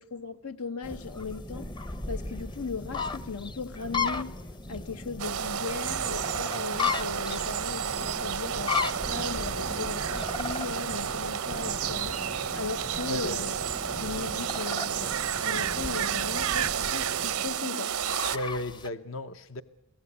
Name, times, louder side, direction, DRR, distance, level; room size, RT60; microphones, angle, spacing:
voice 1, 0.0-1.7 2.1-4.3 4.7-8.8 9.1-12.2 12.5-13.5 14.0-18.0, left 5 dB, 90° left, 1.1 m, -37 dB
sound 1, 0.8-18.9, left 4 dB, 20° left, 0.7 m, -36 dB
sound 2, 5.2-18.4, right 8 dB, 85° right, 0.7 m, -31 dB
voice 2, 18.3-19.6, left 1 dB, 65° left, 0.8 m, -34 dB
24.0 x 16.5 x 8.2 m
head